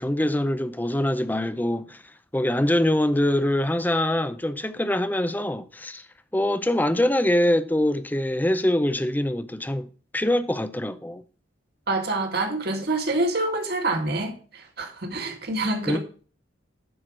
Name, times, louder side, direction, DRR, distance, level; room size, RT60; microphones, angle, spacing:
voice 1, 0.0-2.0 2.3-6.1 6.3-9.9 10.1-11.2 15.9-16.0, left 1 dB, 10° left, 0.5 m, -24 dB
voice 2, 11.9-16.0, right 2 dB, 55° right, 1.9 m, -26 dB
11.0 x 4.6 x 6.1 m
head